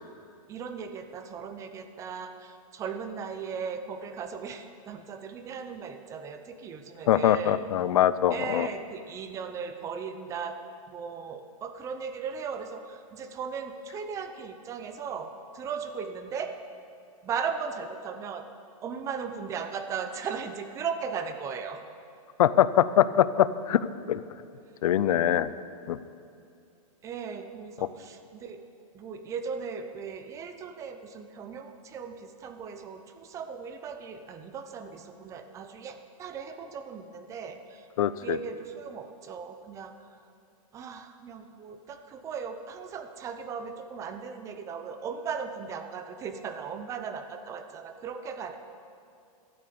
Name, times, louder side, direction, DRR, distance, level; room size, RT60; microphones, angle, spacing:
voice 1, 0.5-7.6 8.3-10.6 10.9-16.5 17.2-18.5 18.8-21.8 27.0-28.6 28.9-40.2 40.7-48.6, right 6 dB, 15° right, 8 dB, 0.6 m, -37 dB
voice 2, 7.1-8.7 22.4-24.2 24.8-25.5 25.9-26.0 38.0-38.4, left 11 dB, 70° left, 16 dB, 0.6 m, -23 dB
12.5 x 8.7 x 6.9 m, 2.5 s
hypercardioid pair, 155°, 19 cm